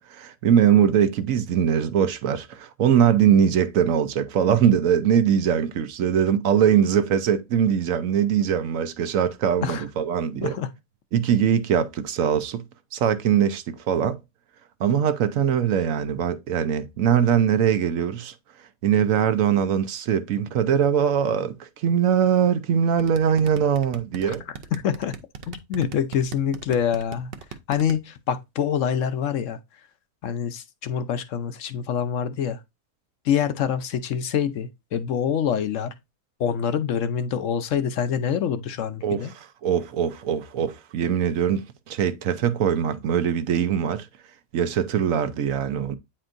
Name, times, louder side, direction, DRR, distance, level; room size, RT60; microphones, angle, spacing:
voice 1, 0.0-10.6 11.1-12.6 12.9-14.2 14.8-18.3 18.8-24.4 39.0-44.1 44.5-45.9, right 8 dB, 70° right, 1.1 m, -22 dB
sound 1, 23.0-28.0, right 7 dB, 50° right, 0.8 m, -37 dB
voice 2, 24.8-25.1 25.5-27.3 27.7-29.6 30.2-32.6 33.3-35.9 36.4-39.3, left 8 dB, 65° left, 0.9 m, -25 dB
8.8 x 4.4 x 2.5 m
omnidirectional pair, 1.5 m